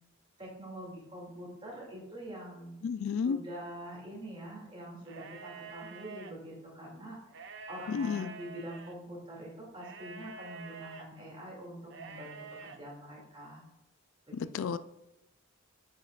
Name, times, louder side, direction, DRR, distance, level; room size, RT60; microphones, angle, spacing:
voice 1, 0.4-2.8 3.2-7.2 7.7-13.6 14.3-14.8, right 1 dB, 25° right, -3 dB, 2.3 m, -45 dB
voice 2, 2.8-3.4 7.9-8.3 14.3-14.8, left 6 dB, 70° left, 14 dB, 0.3 m, -32 dB
sound 1, 5.0-6.3 7.3-8.9 9.8-11.1 11.9-12.8, right 4 dB, 55° right, 0.6 m, -47 dB
9.7 x 5.7 x 2.4 m, 0.95 s
head